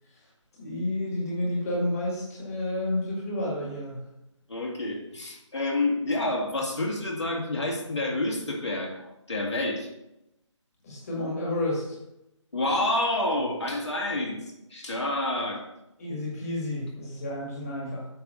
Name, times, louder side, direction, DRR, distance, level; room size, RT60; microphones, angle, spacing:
voice 1, 0.6-4.0 10.8-12.0 16.0-18.1, left 1 dB, 30° left, -3 dB, 1.9 m, -30 dB
voice 2, 4.5-9.9 12.5-14.4 14.7-15.6, left 2 dB, 65° left, -2 dB, 2.3 m, -28 dB
8.6 x 3.5 x 6.6 m, 0.86 s
figure-of-eight pair, 155°, 16 cm